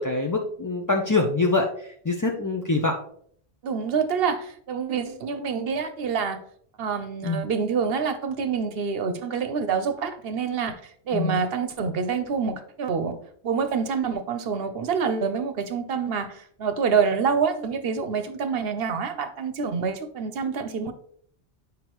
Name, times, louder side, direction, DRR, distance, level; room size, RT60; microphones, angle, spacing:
voice 1, 0.0-1.7 2.0-3.0 7.2-7.4 11.1-11.4, left 3 dB, 30° left, 1 dB, 0.4 m, -24 dB
voice 2, 3.6-6.4 6.8-13.2 13.4-20.9, right 6 dB, 65° right, 9 dB, 0.9 m, -27 dB
8.2 x 5.3 x 3.0 m, 0.62 s
omnidirectional pair, 1.1 m